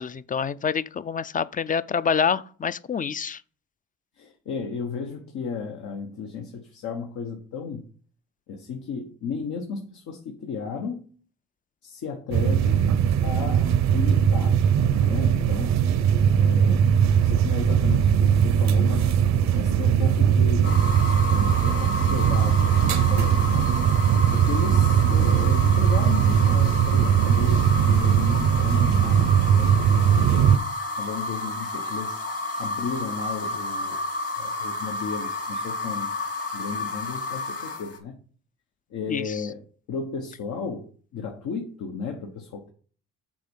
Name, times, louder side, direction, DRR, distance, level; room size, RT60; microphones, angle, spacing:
voice 1, 0.0-3.4 39.1-39.4, left 6 dB, 30° left, 0.4 m, -27 dB
voice 2, 4.2-7.8 8.5-11.0 11.8-12.9 13.2-14.6 14.9-15.8 16.4-16.8 17.2-19.1 19.5-20.7 21.1-23.7 24.3-30.5 31.0-32.2 32.6-34.0 34.4-36.1 36.5-38.2 38.9-39.6 39.9-42.7, left 5 dB, 75° left, 1.2 m, -34 dB
sound 1, 12.3-30.6, right 8 dB, 65° right, 0.7 m, -20 dB
sound 2, 20.6-38.0, left 1 dB, 50° left, 2.2 m, -31 dB
7.6 x 4.3 x 5.4 m
cardioid pair, 90°, 30 cm